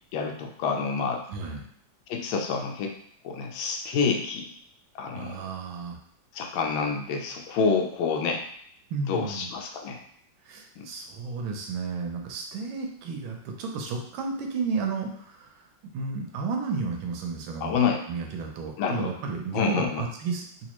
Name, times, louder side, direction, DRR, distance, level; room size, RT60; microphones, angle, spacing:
voice 1, 0.1-1.2 2.1-2.9 3.2-4.5 4.9-5.4 6.3-8.4 9.1-10.0 10.8-10.9 17.6-18.0 18.8-19.1 19.5-20.0, left 5 dB, 85° left, 3 dB, 1.4 m, -28 dB
voice 2, 1.3-1.6 5.1-6.0 8.9-9.5 10.5-15.7 15.9-17.8 18.1-20.7, right 4 dB, 90° right, 2 dB, 1.5 m, -32 dB
4.1 x 2.4 x 2.9 m, 0.66 s
omnidirectional pair, 2.1 m